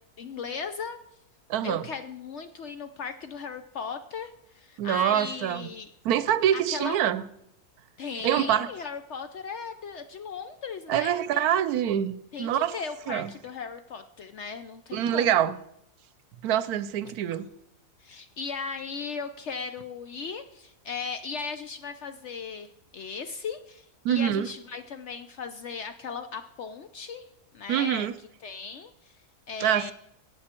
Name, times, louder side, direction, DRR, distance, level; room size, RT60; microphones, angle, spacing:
voice 1, 0.2-1.0 1.6-5.9 6.5-7.0 8.0-11.6 12.3-15.5 17.3-17.4 18.0-22.7 22.9-27.3 27.5-28.1 28.4-29.2 29.5-29.9, left 5 dB, 65° left, 9 dB, 0.7 m, -37 dB
voice 2, 1.5-1.9 4.8-5.7 6.0-7.2 8.2-8.7 10.9-12.7 13.1-13.3 14.9-15.6 16.4-17.5 24.0-24.5 27.7-28.1 29.6-29.9, right 10 dB, 75° right, 16 dB, 1.1 m, -25 dB
15.0 x 8.7 x 4.4 m, 0.78 s
omnidirectional pair, 1.7 m